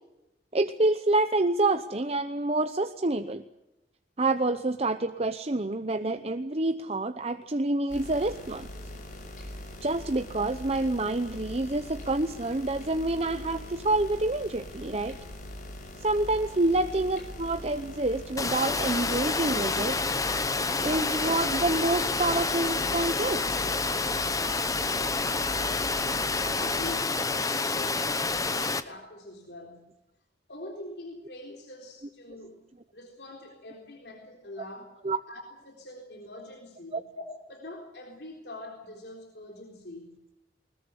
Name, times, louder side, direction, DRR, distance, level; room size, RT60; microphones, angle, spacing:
voice 1, 0.5-3.4 4.2-8.7 9.8-15.2 16.0-20.0 20.8-23.4 35.0-35.2 36.9-37.0, right 2 dB, 35° right, 8 dB, 0.9 m, -27 dB
sound 1, 7.9-27.0, left 1 dB, 45° left, 6.1 m, -42 dB
Water, 18.4-28.8, left 3 dB, 20° left, 1.1 m, -28 dB
voice 2, 26.4-29.9 30.5-32.6 32.9-34.9 35.3-40.2, left 1 dB, 65° left, 1 dB, 3.8 m, -44 dB
21.0 x 20.5 x 8.2 m, 0.90 s
head